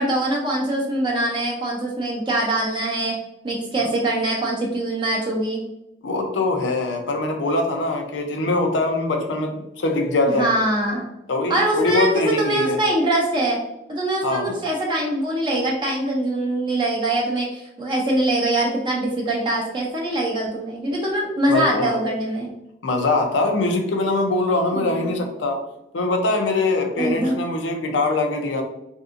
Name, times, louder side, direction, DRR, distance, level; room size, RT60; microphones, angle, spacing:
voice 1, 0.0-3.2 3.4-5.6 10.3-11.0 11.5-13.6 13.9-22.5 24.7-25.1 27.0-27.4, right 1 dB, 25° right, -3 dB, 0.5 m, -23 dB
voice 2, 6.0-10.5 11.3-12.8 14.2-14.6 21.5-22.0 22.8-25.6 25.9-28.6, left 2 dB, 80° left, 4 dB, 0.5 m, -22 dB
3.3 x 2.6 x 2.5 m, 0.88 s
head